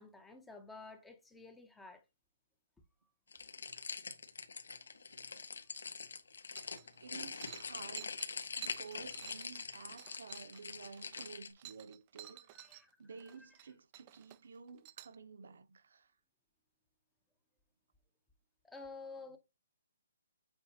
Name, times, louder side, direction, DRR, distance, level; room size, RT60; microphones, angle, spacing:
voice 1, 0.0-2.0 12.2-12.9 13.4-13.5 18.6-19.4, left 3 dB, 5° left, 0.7 m, -51 dB
sound 1, 3.3-11.5, left 5 dB, 80° left, 1.7 m, -44 dB
sound 2, 6.6-7.0 7.3-12.8 13.1-13.7 13.9-15.1, right 16 dB, 20° right, 0.3 m, -53 dB
voice 2, 7.0-8.1 8.6-12.5 13.0-16.1, right 5 dB, 60° right, 0.9 m, -52 dB
8.1 x 4.5 x 2.8 m
hypercardioid pair, 175°, 0 cm